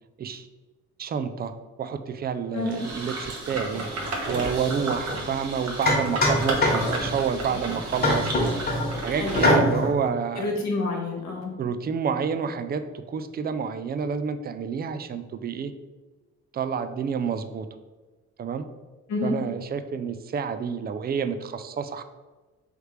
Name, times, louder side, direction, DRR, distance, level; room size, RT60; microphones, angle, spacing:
voice 1, 1.0-1.5 1.8-3.9 4.3-8.5 9.0-10.5 11.6-15.7 16.5-17.7 18.4-18.7 19.2-22.0, right 6 dB, 35° right, 10 dB, 0.4 m, -29 dB
voice 2, 2.5-2.8 9.2-9.7 10.4-11.5 19.1-19.4, left 2 dB, 65° left, 0 dB, 1.2 m, -28 dB
sound 1, 2.7-9.5, right 2 dB, 60° right, 1.1 m, -32 dB
sound 2, 5.1-5.2 5.9-7.2 8.0-8.9 9.3-9.9, left 1 dB, 30° left, 1.3 m, -22 dB
3.2 x 3.2 x 4.8 m, 1.2 s
cardioid pair, 90°, 30 cm